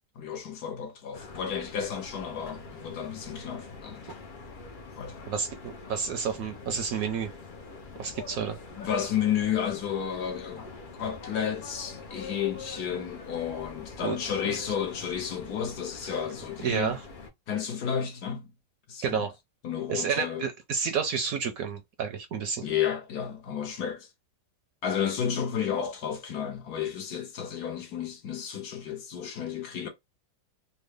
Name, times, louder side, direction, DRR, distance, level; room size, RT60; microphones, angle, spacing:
voice 1, 0.2-4.1 5.0-5.3 8.7-10.7 11.0-17.0 17.5-18.5 18.9-19.2 19.6-20.5 22.6-24.1 24.8-29.9, left 8 dB, 70° left, 1.4 m, -32 dB
sound 1, 1.1-17.3, left 4 dB, 90° left, 0.4 m, -44 dB
voice 2, 5.3-7.3 8.0-8.6 14.0-14.2 14.4-14.6 16.6-17.0 19.0-19.3 19.9-22.6, right 6 dB, 70° right, 0.9 m, -30 dB
3.4 x 2.1 x 3.3 m
omnidirectional pair, 1.8 m